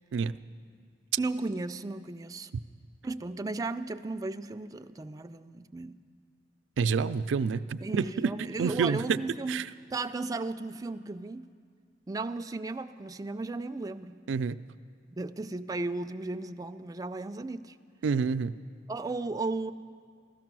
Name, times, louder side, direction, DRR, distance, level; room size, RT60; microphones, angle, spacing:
voice 1, 1.2-2.5 3.0-6.0 7.8-11.5 12.1-14.2 15.1-17.8 18.9-19.7, right 3 dB, 20° right, 9 dB, 0.3 m, -35 dB
voice 2, 6.8-8.3 8.6-9.2 9.5-9.7 14.3-14.6 18.0-18.5, right 5 dB, 90° right, 13 dB, 0.4 m, -28 dB
15.5 x 13.0 x 6.1 m, 2.1 s
head